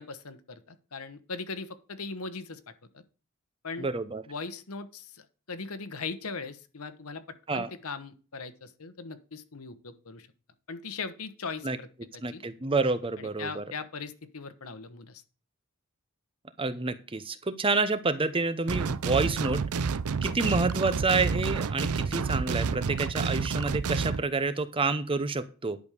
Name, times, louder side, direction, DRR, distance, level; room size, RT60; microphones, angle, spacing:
voice 1, 0.0-2.6 2.9-3.0 3.6-3.9 4.3-7.2 7.5-10.3 10.7-11.9 12.1-12.4 13.2-15.2, left 4 dB, 75° left, 12 dB, 1.2 m, -39 dB
voice 2, 3.8-4.2 7.5-7.7 11.6-11.8 12.2-13.6 16.6-19.6 20.2-25.8, right 3 dB, 25° right, 13 dB, 0.7 m, -28 dB
sound 1, 18.7-24.2, right 5 dB, 80° right, 0.5 m, -29 dB
10.5 x 5.3 x 6.6 m, 0.36 s
head